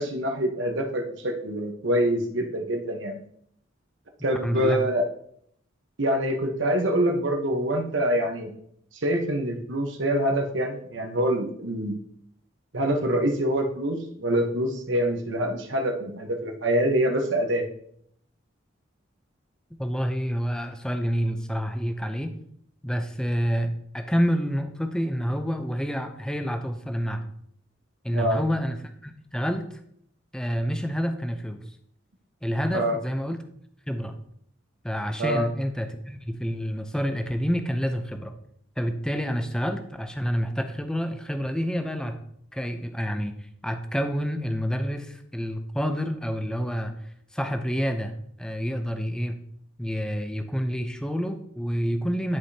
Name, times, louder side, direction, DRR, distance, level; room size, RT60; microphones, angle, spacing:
voice 1, 0.0-3.2 4.2-5.1 6.0-8.5 9.0-12.0 12.7-17.7 28.1-28.4 32.7-33.0 35.2-35.4, right 1 dB, 70° right, 3 dB, 1.1 m, -25 dB
voice 2, 4.4-4.8 19.8-22.4 22.8-27.3 28.0-29.7 30.3-31.6 32.4-33.4 33.9-34.1 34.8-38.3 38.8-42.2 42.5-43.4 43.6-46.9 47.3-49.4 49.8-52.4, equal, 5° left, 6 dB, 0.6 m, -28 dB
11.0 x 4.9 x 2.8 m, 0.68 s
head